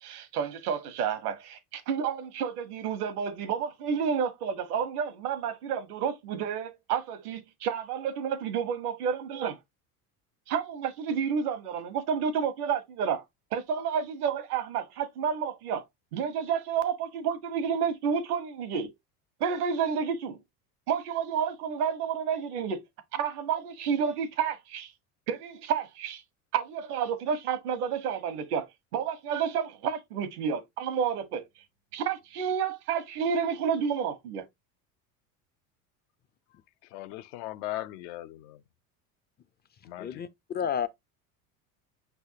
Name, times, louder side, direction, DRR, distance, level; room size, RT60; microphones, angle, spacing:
voice 1, 0.0-9.6 10.5-13.2 13.5-15.8 16.1-18.9 19.4-20.4 20.9-22.8 23.1-24.9 25.3-26.2 26.5-31.4 31.9-34.4, right 7 dB, 85° right, 1.1 m, -30 dB
voice 2, 36.9-38.6 39.8-40.2, left 15 dB, 70° left, 0.7 m, -38 dB
voice 3, 40.0-40.9, left 8 dB, 25° left, 0.4 m, -31 dB
5.7 x 3.4 x 2.7 m
hypercardioid pair, 75°, 44 cm